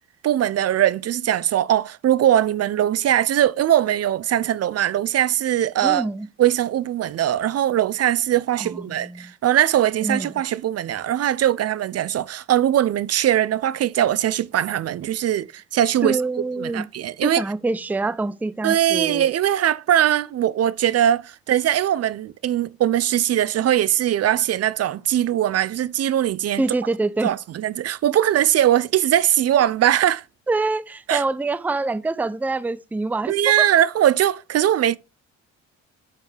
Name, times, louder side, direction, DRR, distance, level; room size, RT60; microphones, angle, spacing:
voice 1, 0.2-6.1 6.4-16.2 16.6-17.4 18.6-26.6 27.2-30.2 31.1-31.2 33.3-35.0, right 11 dB, 55° right, 0.5 m, -21 dB
voice 2, 5.8-6.3 8.6-9.3 10.0-10.3 16.0-16.9 17.2-19.3 26.6-27.4 30.5-33.7, right 3 dB, 5° right, 0.5 m, -25 dB
9.0 x 5.8 x 3.3 m
cardioid pair, 90°, 30 cm